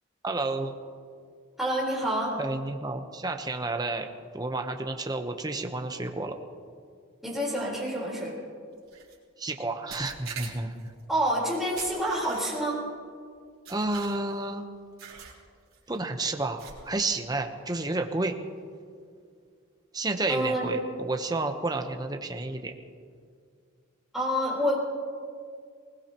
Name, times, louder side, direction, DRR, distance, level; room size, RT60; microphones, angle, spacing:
voice 1, 0.2-0.8 2.4-4.1 4.3-6.3 9.4-10.9 13.7-14.7 15.9-18.4 19.9-22.7, right 2 dB, 20° right, 5 dB, 0.9 m, -31 dB
voice 2, 1.6-2.4 7.2-8.3 11.1-12.8 20.3-20.8 24.1-24.8, right 1 dB, ahead, -5 dB, 4.0 m, -28 dB
sound 1, 8.9-9.1 9.9-10.9 11.8-12.7 13.7-14.4 15.0-15.4 15.7-16.0 16.6-17.0, right 6 dB, 80° right, 3.6 m, -43 dB
20.5 x 20.5 x 3.0 m, 2.1 s
head